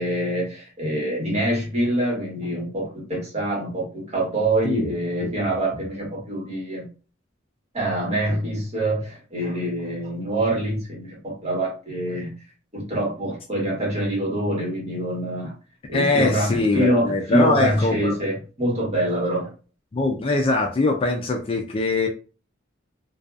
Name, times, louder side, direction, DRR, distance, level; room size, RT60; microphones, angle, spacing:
voice 1, 0.0-6.9 7.7-12.4 12.7-15.5 15.9-19.5, right 1 dB, 35° right, 1.2 m, -25 dB
voice 2, 15.9-18.2 19.9-22.1, left 3 dB, 30° left, 0.3 m, -22 dB
2.6 x 2.2 x 2.3 m
head